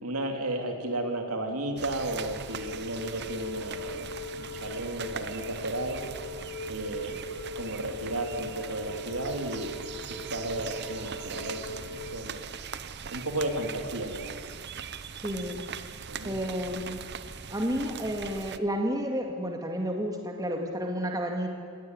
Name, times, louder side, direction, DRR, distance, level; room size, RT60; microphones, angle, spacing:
voice 1, 0.0-6.0 6.7-7.2 7.5-12.5 13.1-14.4 16.1-16.4, right 1 dB, 80° right, 4 dB, 2.9 m, -34 dB
sound 1, 1.8-18.6, right 6 dB, 50° right, 0.8 m, -41 dB
sound 2, 2.1-12.1, left 2 dB, 55° left, 6.0 m, -40 dB
voice 2, 15.2-15.6 16.2-17.0 17.5-21.5, equal, 15° right, 2 dB, 2.0 m, -31 dB
20.0 x 16.5 x 9.6 m, 2.2 s
head